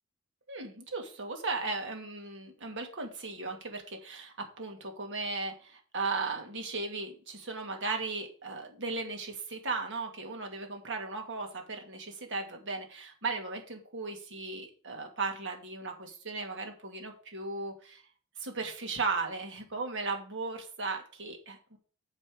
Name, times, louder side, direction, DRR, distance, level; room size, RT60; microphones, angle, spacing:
voice 1, 0.5-18.0 18.4-21.8, right 3 dB, 55° right, 3 dB, 2.5 m, -36 dB
7.3 x 5.6 x 6.6 m, 0.40 s
head